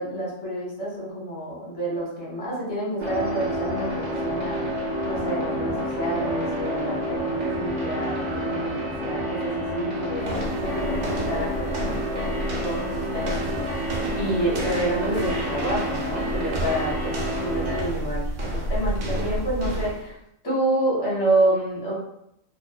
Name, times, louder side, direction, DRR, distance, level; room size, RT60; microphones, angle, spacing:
voice 1, 0.0-4.7 5.0-13.6 14.1-20.2 20.4-21.9, right 1 dB, 30° left, -5 dB, 0.7 m, -28 dB
sound 1, 3.0-17.8, equal, 70° right, 0.4 m, -29 dB
sound 2, 10.2-20.1, right 1 dB, 85° right, 1.0 m, -31 dB
2.5 x 2.2 x 2.3 m, 0.77 s
omnidirectional pair, 1.4 m